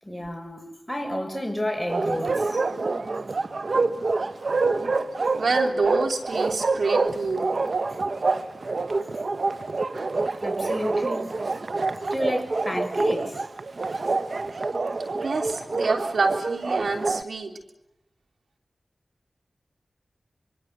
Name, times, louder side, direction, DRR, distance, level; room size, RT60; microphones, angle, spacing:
voice 1, 0.0-2.6 10.4-11.3 12.1-13.4, left 1 dB, ahead, 6.7 m, -30 dB
Bark, 1.9-17.2, right 3 dB, 65° right, 0.9 m, -26 dB
voice 2, 5.4-7.5 15.2-17.5, right 3 dB, 85° right, 3.4 m, -27 dB
24.5 x 24.0 x 8.2 m
cardioid pair, 40°, 0 cm